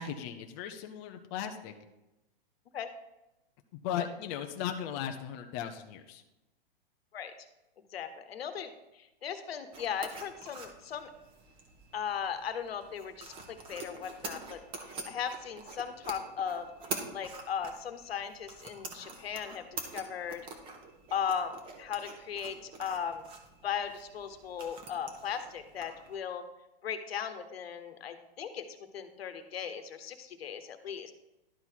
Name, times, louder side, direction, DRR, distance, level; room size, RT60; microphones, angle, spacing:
voice 1, 0.0-1.7 3.7-6.2, left 9 dB, 20° left, 5 dB, 0.4 m, -37 dB
voice 2, 7.9-8.7 9.2-11.1 11.9-14.6 15.1-16.7 17.1-20.5 21.1-23.3 23.6-26.4 26.8-28.7 28.9-31.1, left 7 dB, 85° left, 9 dB, 1.1 m, -37 dB
sound 1, 9.7-26.2, right 3 dB, 20° right, 0.9 m, -46 dB
11.5 x 4.0 x 4.5 m, 0.95 s
hypercardioid pair, 150°, 30 cm